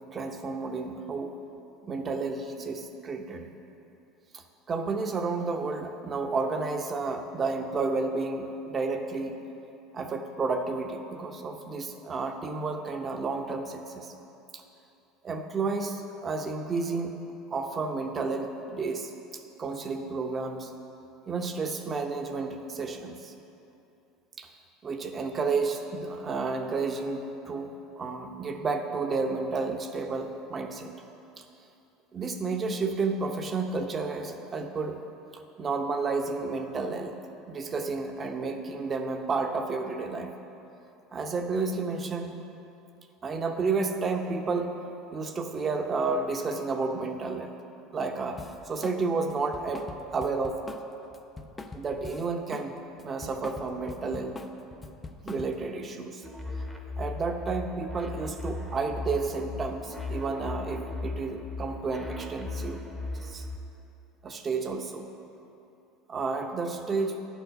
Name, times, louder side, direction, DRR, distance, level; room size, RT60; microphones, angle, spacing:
voice 1, 0.1-1.3 1.8-3.5 4.3-9.3 9.9-14.1 14.5-14.6 15.2-17.2 17.5-20.7 21.3-23.3 24.4-24.5 24.8-30.9 31.4-31.5 32.1-35.0 35.6-37.2 37.5-40.3 41.1-42.4 43.2-44.8 45.1-47.5 47.9-48.4 48.6-49.9 50.1-50.7 51.7-52.8 53.0-54.4 55.2-56.2 57.0-62.8 63.1-63.5 64.2-65.1 66.1-67.2, right 4 dB, 35° right, 5 dB, 0.8 m, -31 dB
Drum kit, 48.4-49.0 49.3-52.7 53.0-55.7, left 3 dB, 20° left, 0.5 m, -43 dB
sound 1, 56.2-63.6, left 3 dB, 5° right, 0.9 m, -37 dB
10.5 x 4.6 x 5.3 m, 2.8 s
hypercardioid pair, 80°, 0 cm